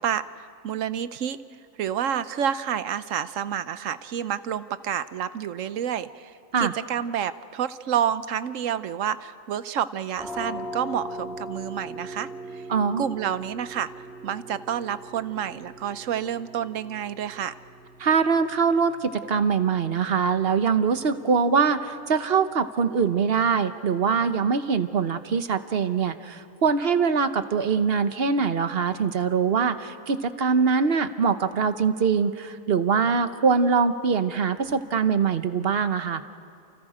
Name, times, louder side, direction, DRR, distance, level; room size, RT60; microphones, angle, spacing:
voice 1, 0.0-1.4 1.8-12.6 13.0-17.6, right 9 dB, 70° right, 13 dB, 1.1 m, -29 dB
sound 1, 10.2-21.7, equal, ahead, 3.0 m, -41 dB
voice 2, 12.7-13.0 18.0-36.2, right 5 dB, 50° right, 10 dB, 1.1 m, -23 dB
29.5 x 29.0 x 5.0 m, 2.5 s
omnidirectional pair, 1.4 m